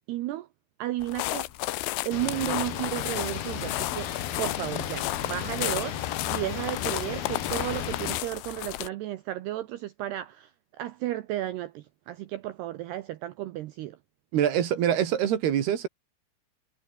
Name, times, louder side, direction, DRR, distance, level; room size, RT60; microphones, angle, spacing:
voice 1, 0.1-0.5 0.8-1.5 2.1-4.1 4.4-6.0 6.3-14.0, right 14 dB, 85° right, 2.3 m, -33 dB
sound 1, 1.0-8.9, left 18 dB, 80° left, 3.1 m, -33 dB
sound 2, 2.1-8.2, left 10 dB, 55° left, 3.5 m, -34 dB
voice 2, 14.3-15.9, right 10 dB, 60° right, 3.7 m, -24 dB
omnidirectional pair, 6.0 m